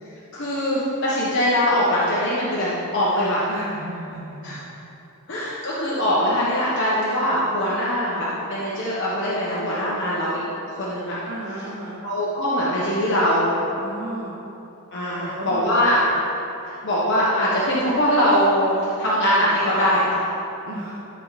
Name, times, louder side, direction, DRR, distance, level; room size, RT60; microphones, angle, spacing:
voice 1, 0.3-3.5 4.4-4.6 5.3-10.4 10.7-11.1 12.0-13.5 14.9-16.0 16.8-20.2, equal, 55° left, -8 dB, 1.3 m, -22 dB
voice 2, 3.5-4.6 11.3-12.0 13.8-14.4 15.1-16.0 20.7-21.0, right 1 dB, 60° right, -5 dB, 0.9 m, -34 dB
12.5 x 4.8 x 4.2 m, 2.9 s
head